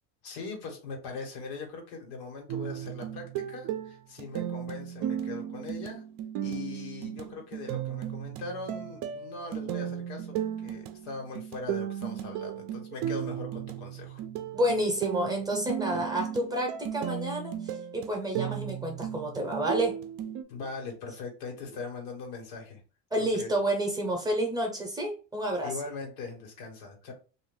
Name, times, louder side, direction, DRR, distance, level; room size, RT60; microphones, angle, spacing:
voice 1, 0.2-6.0 6.4-14.2 15.9-16.0 20.5-22.8 23.2-23.5 25.6-27.1, left 4 dB, 90° left, 2 dB, 1.4 m, -41 dB
sound 1, 2.5-20.4, right 10 dB, 45° right, 0.5 m, -35 dB
voice 2, 14.5-20.0 23.1-25.7, right 1 dB, 10° right, 1 dB, 0.7 m, -30 dB
2.5 x 2.5 x 3.5 m, 0.35 s
cardioid pair, 140°, 41 cm